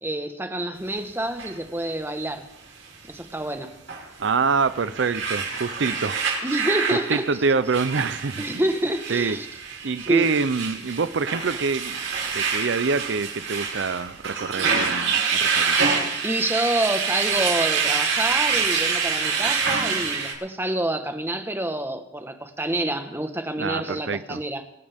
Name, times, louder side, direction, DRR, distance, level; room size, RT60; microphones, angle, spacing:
voice 1, 0.0-2.4 3.1-3.7 6.4-7.3 8.4-9.5 10.1-10.3 16.2-24.6, right 1 dB, 10° right, 6 dB, 1.3 m, -27 dB
sound 1, 1.4-1.5 3.9-4.0 4.6-20.3, right 5 dB, 90° right, 6.4 m, -26 dB
voice 2, 4.2-6.2 6.9-8.6 9.1-9.4 9.8-12.1 12.3-15.8 23.6-24.4, right 4 dB, 70° right, 14 dB, 0.6 m, -25 dB
25.0 x 12.0 x 3.6 m, 0.85 s
head